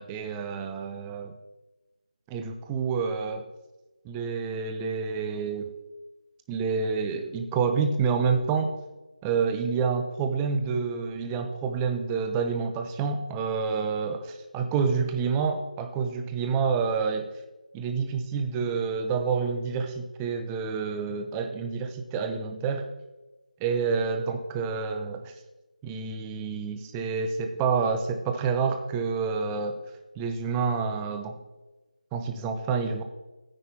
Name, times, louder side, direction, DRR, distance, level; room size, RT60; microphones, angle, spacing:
voice 1, 0.0-1.3 2.3-3.4 4.0-5.7 6.5-8.7 9.2-17.3 17.7-22.9 23.6-25.3 25.8-29.8 30.2-31.4 32.1-33.0, right 5 dB, 10° right, 6 dB, 0.6 m, -28 dB
13.5 x 9.7 x 2.8 m, 1.1 s
figure-of-eight pair, 165°, 4 cm